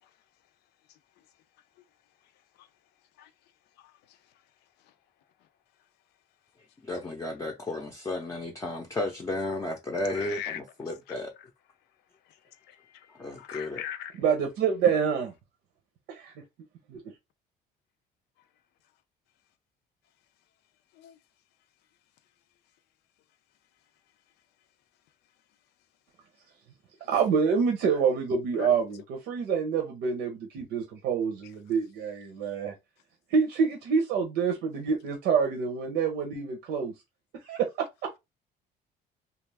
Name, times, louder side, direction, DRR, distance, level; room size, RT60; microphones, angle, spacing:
voice 1, 6.8-11.3 13.2-13.8, left 2 dB, 20° left, 0.6 m, -33 dB
voice 2, 10.0-10.6 11.1-11.5 12.3-12.4 12.7-14.2 20.9-21.2 28.6-28.8, left 11 dB, 80° left, 0.5 m, -40 dB
voice 3, 14.2-15.3 16.1-16.3 16.9-17.0 27.1-32.7 33.3-36.9 37.4-38.1, right 6 dB, 80° right, 0.8 m, -27 dB
2.4 x 2.3 x 3.3 m
cardioid pair, 110°, 17 cm